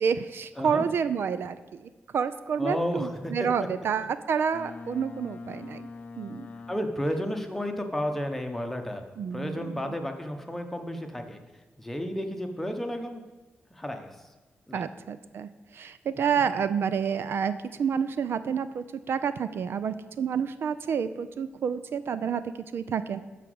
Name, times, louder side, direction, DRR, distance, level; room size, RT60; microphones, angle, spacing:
voice 1, 0.0-5.9 6.2-6.5 9.2-9.8 14.7-23.2, right 7 dB, 65° right, 13 dB, 0.5 m, -29 dB
voice 2, 2.6-3.3 6.7-9.0 9.3-11.4 11.8-13.2 13.7-14.1 14.7-14.8, equal, 5° left, 4 dB, 1.0 m, -32 dB
Boat Water vehicle, 4.5-7.2, left 4 dB, 35° left, 0.6 m, -43 dB
12.5 x 5.0 x 7.9 m, 1.2 s
wide cardioid pair, 160°, 4 cm